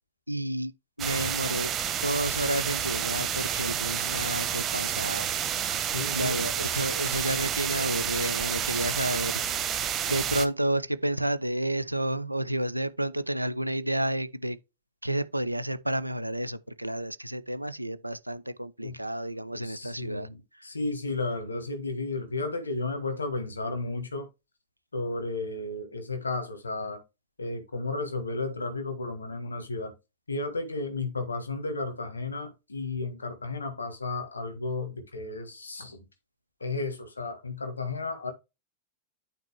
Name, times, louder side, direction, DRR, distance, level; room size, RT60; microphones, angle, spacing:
voice 1, 0.3-0.7 1.0-1.7 2.0-5.7 6.1-9.4 10.1-14.6 15.0-20.3 20.6-20.7, right 1 dB, 85° right, 0.6 m, -30 dB
sound 1, 1.0-10.5, right 9 dB, 30° right, 1.1 m, -30 dB
voice 2, 5.9-6.4 18.8-18.9 19.5-20.4 20.6-24.2 24.9-27.0 27.4-29.9 30.3-36.0 36.6-38.3, left 3 dB, 75° left, 1.5 m, -33 dB
9.1 x 4.2 x 3.3 m
figure-of-eight pair, 90°, 0 cm